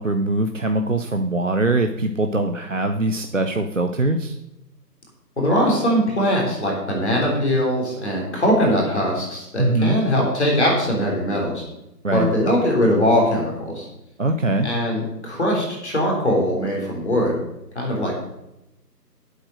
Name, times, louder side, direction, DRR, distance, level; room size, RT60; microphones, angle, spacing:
voice 1, 0.0-4.4 9.6-10.0 12.0-12.3 14.2-14.7, right 2 dB, 50° right, 5 dB, 0.7 m, -22 dB
voice 2, 5.4-11.6 12.1-13.9 14.6-17.4 17.8-18.1, equal, 40° left, -1 dB, 3.5 m, -21 dB
8.2 x 8.1 x 6.4 m, 0.90 s
figure-of-eight pair, 170°, 50 cm